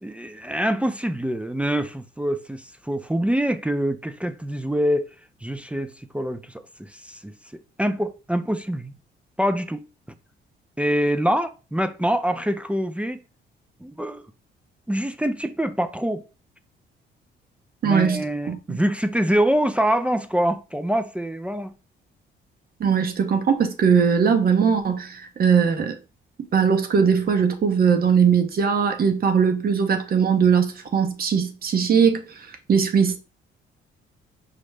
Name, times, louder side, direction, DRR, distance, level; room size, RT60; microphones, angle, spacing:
voice 1, 0.0-5.1 5.4-6.4 6.8-8.9 9.4-9.9 10.8-13.2 13.8-14.3 14.9-16.2 17.8-21.7, equal, 5° right, 0.3 m, -25 dB
voice 2, 17.8-18.8 22.8-26.0 26.5-32.2 32.7-33.2, right 6 dB, 50° right, 0.8 m, -20 dB
5.0 x 2.1 x 3.2 m
cardioid pair, 90°, 20 cm